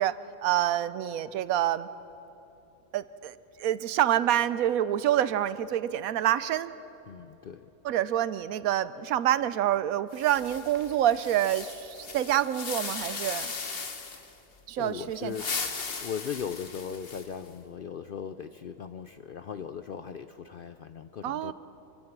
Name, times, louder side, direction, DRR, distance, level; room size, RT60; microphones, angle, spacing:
voice 1, 0.0-1.9 2.9-6.7 7.8-13.5 14.7-15.4 21.2-21.5, right 11 dB, 85° right, 15 dB, 1.1 m, -27 dB
voice 2, 7.1-7.7 14.8-15.5 16.0-21.5, left 7 dB, 65° left, 10 dB, 0.5 m, -38 dB
sound 1, 10.1-14.3 15.1-17.5, left 4 dB, 45° left, 1.4 m, -37 dB
26.0 x 16.5 x 6.0 m, 3.0 s
omnidirectional pair, 1.5 m